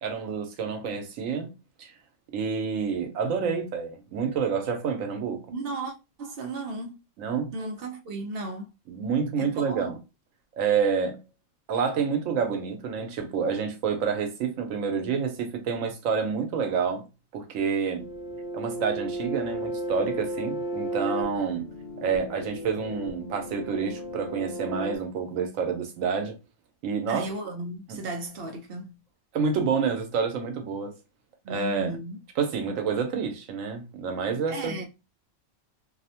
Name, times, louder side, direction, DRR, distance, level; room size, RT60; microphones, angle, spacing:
voice 1, 0.0-1.5 1.8-1.9 2.3-5.4 7.2-7.5 8.9-10.0 10.6-11.2 11.7-17.0 17.3-18.0 18.5-21.7 22.0-26.4 26.8-27.3 27.9-28.0 29.3-30.9 31.5-31.9 32.4-34.8, right 6 dB, 85° right, 1.0 m, -28 dB
voice 2, 5.5-7.0 7.5-8.7 9.4-9.9 27.1-29.0 31.4-32.2 34.5-34.8, right 2 dB, 60° right, 0.7 m, -35 dB
sound 1, 18.0-25.0, right 1 dB, 60° left, 0.8 m, -34 dB
2.7 x 2.0 x 2.8 m
omnidirectional pair, 1.3 m